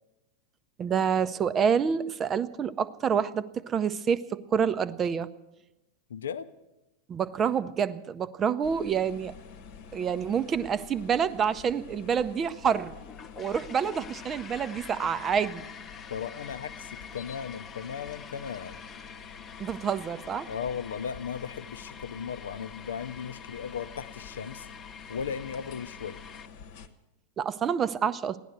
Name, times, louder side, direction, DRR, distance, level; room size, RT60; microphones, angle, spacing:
voice 1, 0.8-5.3 7.1-9.3 9.9-12.9 13.4-15.6 19.6-20.5 27.4-28.4, right 7 dB, 25° right, 14 dB, 0.6 m, -27 dB
voice 2, 6.1-6.5 16.1-18.8 20.5-24.7 25.1-26.2, left 7 dB, 65° left, 13 dB, 0.6 m, -36 dB
sound 1, 8.6-26.9, left 6 dB, 50° left, 1.1 m, -48 dB
sound 2, 12.7-26.5, left 6 dB, 25° left, 0.9 m, -47 dB
16.0 x 11.5 x 8.1 m, 0.98 s
figure-of-eight pair, 90°, 0 cm